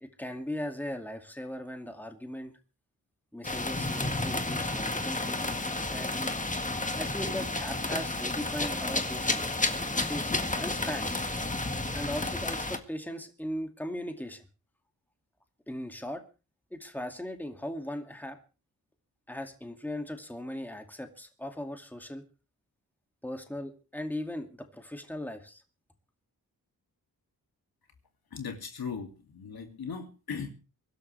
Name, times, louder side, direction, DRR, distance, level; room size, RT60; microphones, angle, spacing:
voice 1, 0.0-2.5 3.3-6.4 7.0-9.5 10.1-11.2 11.9-14.4 15.7-16.2 16.7-18.4 19.3-22.2 23.2-25.6, left 1 dB, 5° left, 5 dB, 2.4 m, -38 dB
sound 1, 3.4-12.8, left 2 dB, 20° left, 1.8 m, -31 dB
voice 2, 28.3-30.5, left 6 dB, 75° left, 4 dB, 2.7 m, -38 dB
24.0 x 12.5 x 3.4 m, 0.33 s
cardioid pair, 70°, 37 cm